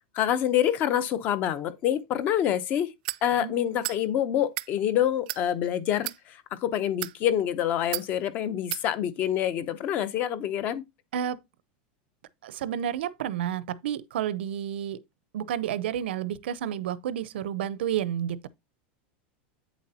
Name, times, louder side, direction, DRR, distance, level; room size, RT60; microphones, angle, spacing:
voice 1, 0.1-2.9 3.2-10.8, left 10 dB, 30° left, 0.7 m, -26 dB
sound 1, 3.0-3.2 3.8-4.0 4.4-4.7 5.3-5.4 6.0-6.2 6.9-7.2 7.9-8.1 8.7-8.8, right 18 dB, 55° right, 0.4 m, -33 dB
voice 2, 12.4-15.0 15.3-18.5, right 10 dB, 85° right, 0.8 m, -30 dB
8.8 x 7.2 x 2.8 m
supercardioid pair, 175°, 6 cm